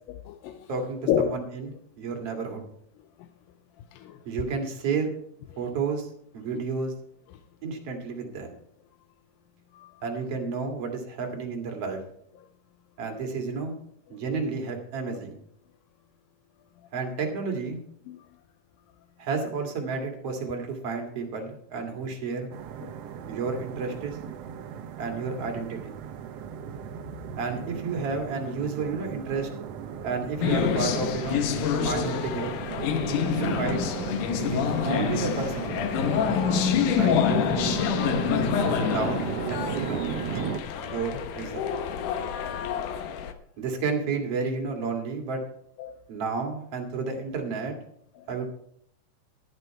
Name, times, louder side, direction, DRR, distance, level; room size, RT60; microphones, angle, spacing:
voice 1, 0.1-0.7 1.1-1.3 3.9-4.2 9.7-9.9 18.1-18.2 22.8-22.9 33.0-33.1 38.1-38.6 42.1-42.2 45.8-46.0, left 9 dB, 90° left, 8 dB, 2.5 m, -31 dB
voice 2, 0.7-2.6 4.2-5.1 5.6-6.1 6.3-6.9 7.6-8.5 10.0-12.0 13.0-13.7 14.1-15.4 16.9-17.8 19.2-22.5 23.3-24.2 25.0-25.9 27.4-29.5 30.0-31.4 31.7-32.5 33.2-33.8 34.4-35.7 36.9-37.8 38.9-41.7 43.6-45.4 46.1-47.8 48.3-48.5, right 4 dB, 50° right, 2 dB, 2.8 m, -31 dB
sound 1, 22.5-40.6, right 8 dB, 80° right, 1.4 m, -36 dB
sound 2, 30.4-43.3, left 8 dB, 70° left, 2.3 m, -27 dB
11.5 x 11.0 x 4.6 m, 0.67 s
omnidirectional pair, 4.0 m